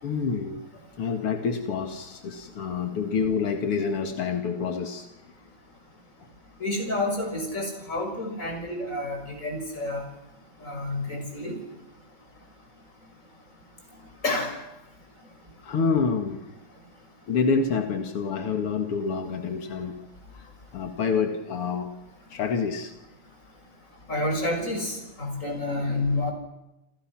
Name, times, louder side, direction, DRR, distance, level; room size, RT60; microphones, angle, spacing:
voice 1, 0.0-5.1 15.6-16.4 17.3-20.0 20.3-21.9 22.3-22.9, left 5 dB, 90° left, 5 dB, 2.9 m, -27 dB
voice 2, 6.6-10.1 10.6-11.6 14.2-14.6 24.1-26.3, left 2 dB, 35° left, 4 dB, 6.4 m, -29 dB
28.0 x 28.0 x 6.1 m, 0.92 s
omnidirectional pair, 2.4 m